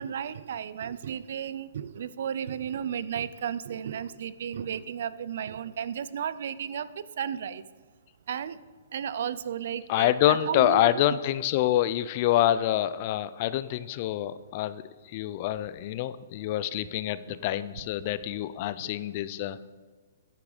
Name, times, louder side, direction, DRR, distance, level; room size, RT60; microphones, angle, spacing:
voice 1, 0.0-7.6 8.3-8.6 8.9-11.2 17.3-17.4 18.8-18.9, right 8 dB, 60° right, 16 dB, 0.4 m, -34 dB
voice 2, 9.9-14.8 15.1-19.6, left 13 dB, 35° left, 15 dB, 0.3 m, -26 dB
9.7 x 6.0 x 4.9 m, 1.4 s
hypercardioid pair, 165°, 0 cm